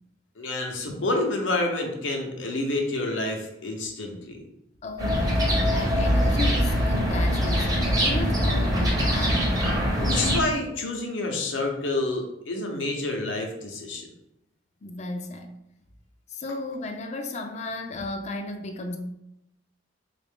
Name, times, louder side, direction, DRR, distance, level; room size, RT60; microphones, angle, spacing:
voice 1, 0.4-4.4 10.0-14.1, left 2 dB, 90° left, 0.7 m, -28 dB
voice 2, 4.8-9.6 14.8-15.5 16.3-19.0, left 2 dB, 35° left, 0.4 m, -34 dB
sound 1, 5.0-10.4, equal, 20° right, 0.7 m, -23 dB
3.6 x 2.5 x 3.5 m
head